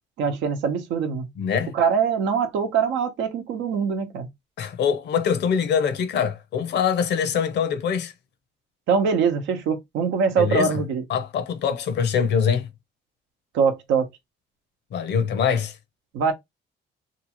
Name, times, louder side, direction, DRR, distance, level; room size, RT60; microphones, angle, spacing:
voice 1, 0.2-1.3 1.7-4.3 8.9-11.0 13.5-14.1 16.1-16.3, right 6 dB, 90° right, 0.8 m, -23 dB
voice 2, 1.4-1.7 4.6-8.1 10.4-10.8 11.1-12.7 14.9-15.8, left 7 dB, 70° left, 0.7 m, -23 dB
2.9 x 2.4 x 2.9 m
cardioid pair, 90°, 19 cm